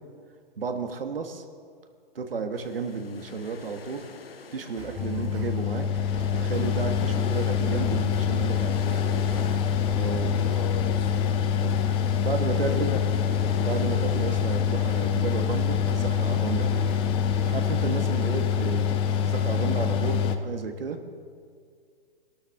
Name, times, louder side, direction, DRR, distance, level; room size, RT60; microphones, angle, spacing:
voice 1, 0.6-1.4 2.2-4.1 4.5-5.9 6.3-9.0 9.9-10.3 11.6-11.7 12.2-12.9 13.6-16.9 17.5-21.0, right 4 dB, 75° right, 5 dB, 1.7 m, -32 dB
sound 1, 2.6-14.7, left 5 dB, 80° left, 1.1 m, -44 dB
sound 2, 4.8-5.5 5.9-11.9 12.3-17.9, equal, 15° right, 2.4 m, -42 dB
Mechanical fan, 5.0-20.4, left 8 dB, 20° left, 0.5 m, -25 dB
voice 2, 9.8-11.3 12.7-13.1, left 8 dB, 45° left, 9 dB, 1.1 m, -38 dB
20.5 x 12.0 x 3.7 m, 2.1 s
figure-of-eight pair, 120°, 29 cm